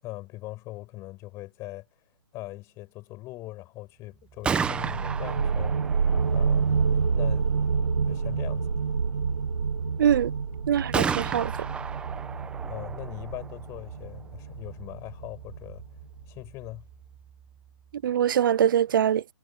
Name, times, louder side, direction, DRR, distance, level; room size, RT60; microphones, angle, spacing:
voice 1, 0.0-1.9 2.3-5.8 6.3-6.8 7.1-7.6 8.0-8.7 12.7-15.8 16.3-16.9, left 18 dB, 20° left, 7.5 m, -40 dB
Gunshot gunfire, 4.2-18.0, right 6 dB, 5° right, 1.0 m, -36 dB
sound 1, 4.6-16.0, right 5 dB, 90° right, 1.6 m, -28 dB
voice 2, 10.0-10.3 10.7-11.5 18.0-19.2, right 9 dB, 45° right, 0.4 m, -23 dB
hypercardioid pair, 160°, 15 cm